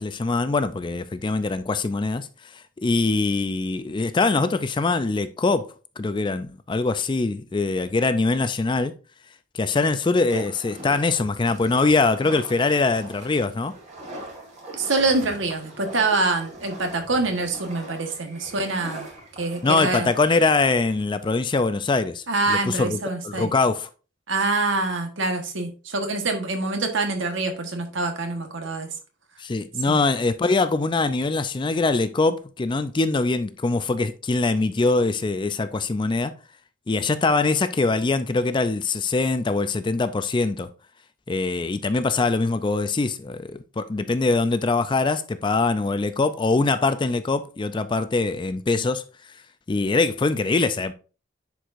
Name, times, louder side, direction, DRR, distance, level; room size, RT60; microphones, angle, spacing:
voice 1, 0.0-2.3 2.8-5.7 6.0-8.9 9.5-13.7 19.6-23.9 29.4-36.3 36.9-40.7 41.3-49.0 49.7-50.9, left 3 dB, 25° left, 0.4 m, -23 dB
sound 1, 10.3-21.3, right 1 dB, 35° right, 2.2 m, -41 dB
voice 2, 14.7-19.1 19.4-20.1 22.3-23.5 24.3-28.9 29.9-30.0, right 3 dB, 65° right, 1.3 m, -25 dB
10.0 x 4.7 x 2.6 m
head